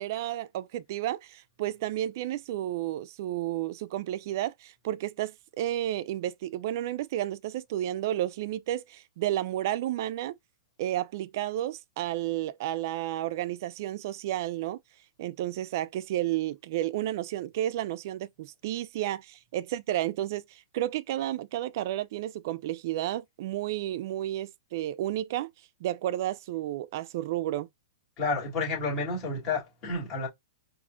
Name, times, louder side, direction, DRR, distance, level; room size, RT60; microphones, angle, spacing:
voice 1, 0.0-10.3 10.8-14.8 15.2-25.5 25.8-27.7, right 13 dB, 50° right, 0.4 m, -32 dB
voice 2, 28.2-30.3, left 3 dB, 25° left, 2.5 m, -30 dB
4.8 x 2.5 x 2.4 m
hypercardioid pair, 150°, 2 cm